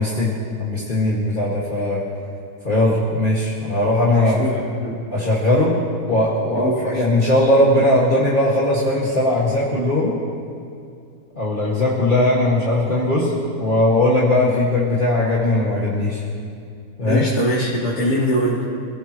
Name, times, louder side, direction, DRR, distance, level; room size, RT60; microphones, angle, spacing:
voice 1, 0.0-2.0 2.6-4.4 5.1-5.8 6.1-10.1 11.4-13.3 13.6-16.2 17.0-17.3, left 1 dB, 30° left, -7 dB, 2.1 m, -19 dB
voice 2, 4.1-5.0 6.6-7.0 17.0-18.7, equal, 80° left, -7 dB, 2.6 m, -23 dB
27.5 x 17.0 x 3.1 m, 2.3 s
omnidirectional pair, 1.7 m